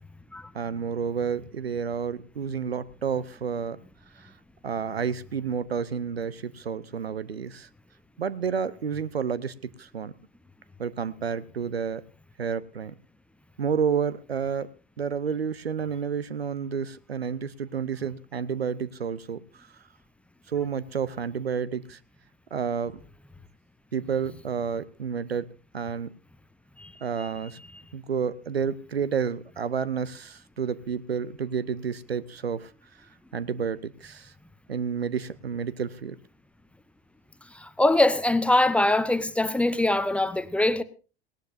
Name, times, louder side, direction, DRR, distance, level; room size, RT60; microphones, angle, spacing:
voice 1, 0.5-3.8 4.2-4.3 4.6-7.7 8.2-10.1 10.8-12.0 12.4-12.9 13.6-14.7 15.0-19.7 20.5-22.0 22.5-23.0 23.9-25.5 25.7-26.1 27.0-27.6 27.9-32.7 33.3-34.3 34.7-36.2, right 6 dB, 80° right, 0.7 m, -30 dB
voice 2, 37.5-40.8, left 2 dB, 5° left, 0.7 m, -23 dB
19.0 x 17.5 x 2.6 m
figure-of-eight pair, 80°, 30 cm